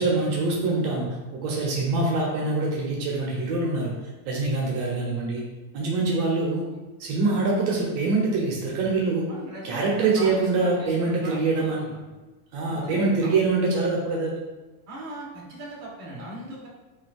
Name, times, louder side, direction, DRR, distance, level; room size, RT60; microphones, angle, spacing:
voice 1, 0.0-3.9 4.2-5.4 5.7-6.6 7.0-9.3 9.6-11.9 12.5-14.3, right 3 dB, 70° right, -3 dB, 1.1 m, -24 dB
voice 2, 9.3-12.0 12.7-13.3 14.9-16.7, right 1 dB, 35° right, -5 dB, 1.5 m, -40 dB
5.6 x 2.8 x 2.5 m, 1.2 s
supercardioid pair, 125°, 45 cm